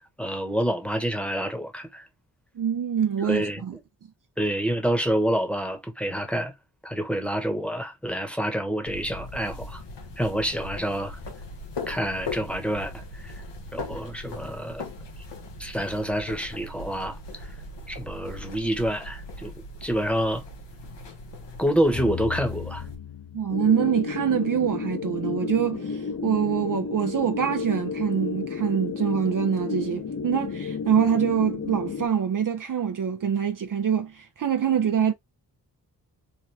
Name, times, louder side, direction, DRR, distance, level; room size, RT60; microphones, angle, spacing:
voice 1, 0.2-2.0 3.2-3.6 4.4-6.5 6.8-9.8 10.2-11.2 11.9-13.4 13.7-14.8 15.6-17.5 17.9-19.5 19.8-20.4 21.6-22.8, equal, 5° left, 1.0 m, -27 dB
voice 2, 2.6-3.8 23.3-35.1, right 8 dB, 50° right, 0.6 m, -25 dB
sound 1, 8.9-22.9, left 2 dB, 85° left, 0.9 m, -39 dB
sound 2, 22.0-24.9, left 10 dB, 70° left, 1.6 m, -37 dB
sound 3, 23.5-32.1, left 5 dB, 40° left, 0.7 m, -32 dB
3.5 x 2.2 x 2.7 m
cardioid pair, 45°, 41 cm